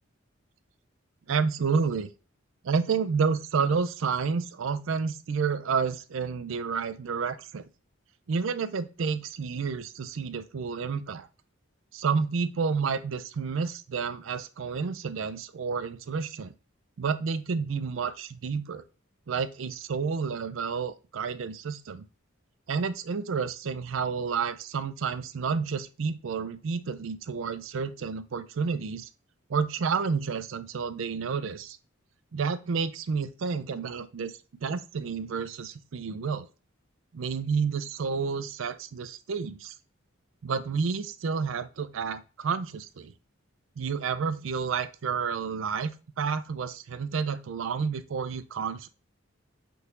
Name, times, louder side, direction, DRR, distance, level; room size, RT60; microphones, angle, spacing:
voice 1, 1.3-2.1 2.6-7.6 8.3-11.3 11.9-16.5 17.0-18.8 19.3-22.0 22.7-29.1 29.5-31.8 32.3-34.3 34.6-36.5 37.1-39.7 40.4-43.1 43.8-48.9, right 5 dB, 65° right, 12 dB, 0.4 m, -30 dB
5.5 x 3.9 x 2.5 m, 0.34 s
head